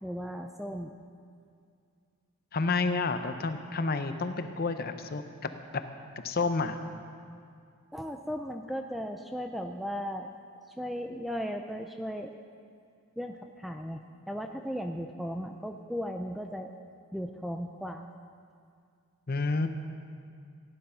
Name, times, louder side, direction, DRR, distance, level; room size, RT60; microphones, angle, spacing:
voice 1, 0.0-0.9 7.9-10.3 10.8-12.3 13.2-16.7 17.1-18.1, equal, ahead, 4 dB, 0.3 m, -36 dB
voice 2, 2.5-5.2 6.2-6.8 19.3-19.7, left 3 dB, 45° left, 8 dB, 0.7 m, -29 dB
15.5 x 10.0 x 5.6 m, 2.3 s
head